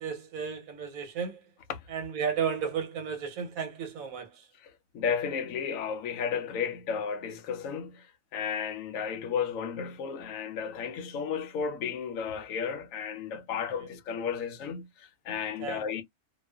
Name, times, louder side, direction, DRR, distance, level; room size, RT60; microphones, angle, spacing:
voice 1, 0.0-1.4 1.9-4.5 15.6-16.0, right 7 dB, 70° right, 1.2 m, -33 dB
voice 2, 4.6-8.1 8.3-16.0, left 6 dB, 70° left, 0.9 m, -33 dB
2.4 x 2.3 x 2.2 m
omnidirectional pair, 1.5 m